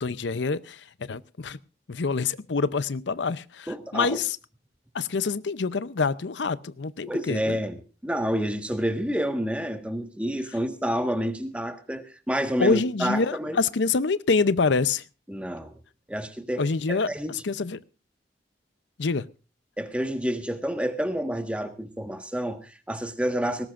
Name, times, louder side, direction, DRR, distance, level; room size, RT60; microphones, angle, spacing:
voice 1, 0.0-1.6 1.9-4.4 4.9-7.6 12.6-15.0 16.6-17.8 19.0-19.3, left 4 dB, 80° left, 0.6 m, -26 dB
voice 2, 3.7-4.2 7.0-13.6 15.3-15.8 16.1-17.3 19.8-23.7, equal, 5° right, 1.5 m, -29 dB
20.0 x 17.5 x 2.5 m
head